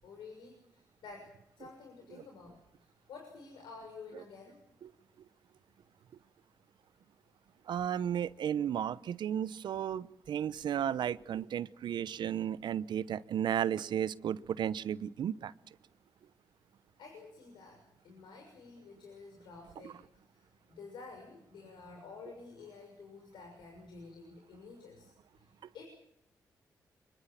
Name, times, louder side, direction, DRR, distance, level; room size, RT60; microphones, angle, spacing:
voice 1, 0.0-4.6 17.0-25.8, left 4 dB, 80° left, 2 dB, 6.3 m, -51 dB
voice 2, 7.7-15.5 19.8-19.9, right 9 dB, 75° right, 18 dB, 0.9 m, -34 dB
24.5 x 22.5 x 7.4 m, 0.78 s
supercardioid pair, 45°, 8 cm